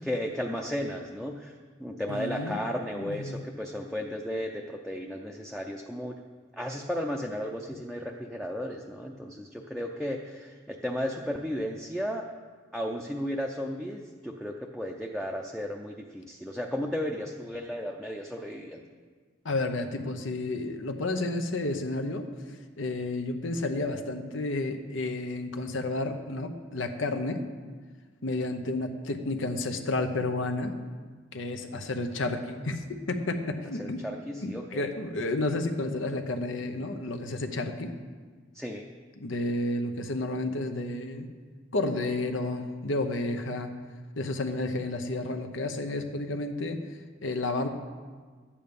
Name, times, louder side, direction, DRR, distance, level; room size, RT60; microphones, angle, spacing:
voice 1, 0.0-1.5 1.8-6.1 6.5-12.2 12.7-18.8 33.8-34.9 38.5-38.9, equal, ahead, 0 dB, 0.5 m, -34 dB
voice 2, 2.1-2.6 2.9-3.4 19.4-22.3 22.8-27.4 28.2-30.7 31.3-34.0 34.4-37.9 39.2-41.3 41.7-43.7 44.2-46.8 47.2-47.7, left 2 dB, 85° left, 6 dB, 0.9 m, -31 dB
11.5 x 8.6 x 5.3 m, 1.5 s
head